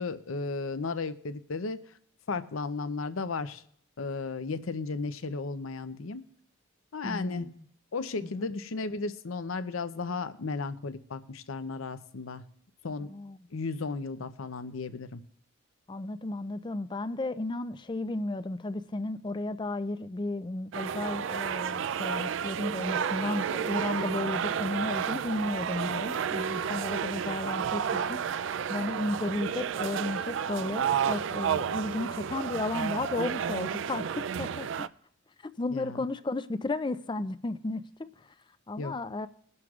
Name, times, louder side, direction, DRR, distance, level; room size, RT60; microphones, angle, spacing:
voice 1, 0.0-1.8 2.3-3.6 4.0-6.2 6.9-7.5 7.9-12.4 12.8-13.1 13.5-15.2 35.7-36.0 38.8-39.0, left 4 dB, 80° left, 0.7 m, -34 dB
voice 2, 7.0-7.6 8.2-8.5 13.0-13.4 15.9-28.2 28.7-34.9 35.6-38.1 38.7-39.3, left 2 dB, 20° left, 0.4 m, -34 dB
sound 1, 20.7-34.9, right 7 dB, 65° right, 0.4 m, -31 dB
21.5 x 11.0 x 2.4 m
head